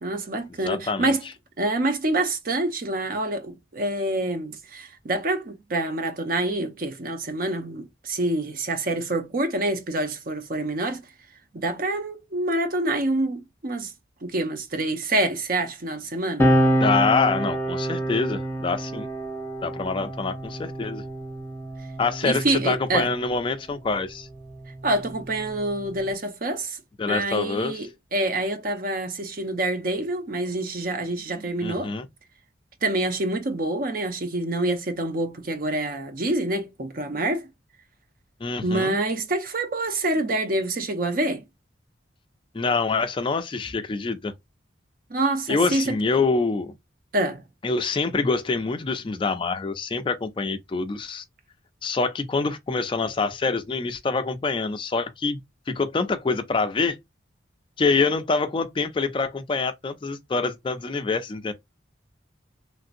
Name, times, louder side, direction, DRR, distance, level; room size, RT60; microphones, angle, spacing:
voice 1, 0.0-1.2 1.6-11.0 11.5-13.9 14.2-16.5 22.2-23.1 24.8-26.8 27.1-31.9 32.8-37.5 38.6-41.4 45.1-46.0 47.1-47.4, right 2 dB, 50° right, 0.6 m, -26 dB
voice 2, 0.6-1.1 16.8-19.1 19.6-21.0 22.0-24.3 27.0-27.8 31.6-32.1 38.4-38.9 42.5-44.3 45.5-46.7 47.6-51.2 51.8-55.4 55.7-57.0 57.8-61.5, left 4 dB, 25° left, 0.3 m, -25 dB
sound 1, 16.4-23.3 24.3-26.1, right 1 dB, 10° left, 0.8 m, -27 dB
3.2 x 2.7 x 2.5 m
head